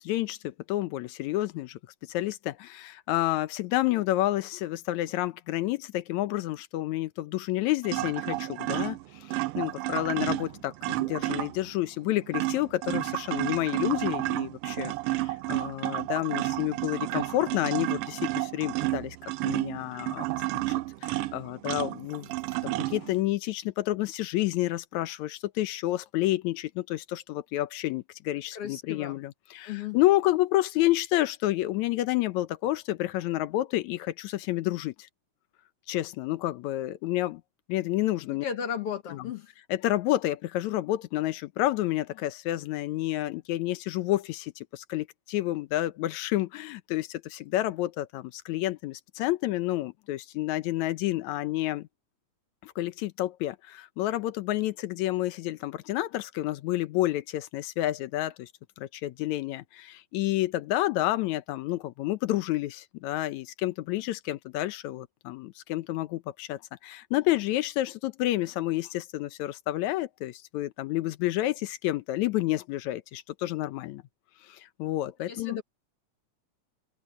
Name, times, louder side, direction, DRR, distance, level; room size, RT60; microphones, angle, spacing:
voice 1, 0.0-1.8 2.1-14.9 15.2-19.2 19.4-20.3 20.5-20.6 21.0-22.3 22.6-34.9 35.9-37.4 37.7-38.5 39.1-39.3 39.7-51.9 52.6-58.5 58.8-74.0 74.5-75.6, left 15 dB, 80° left, 2.1 m, -29 dB
sound 1, 7.8-11.7 12.1-23.2, right 18 dB, 90° right, 1.3 m, -31 dB
voice 2, 28.5-29.2 29.6-30.0 38.4-39.5 75.3-75.6, left 8 dB, 60° left, 2.1 m, -35 dB
omnidirectional pair, 3.3 m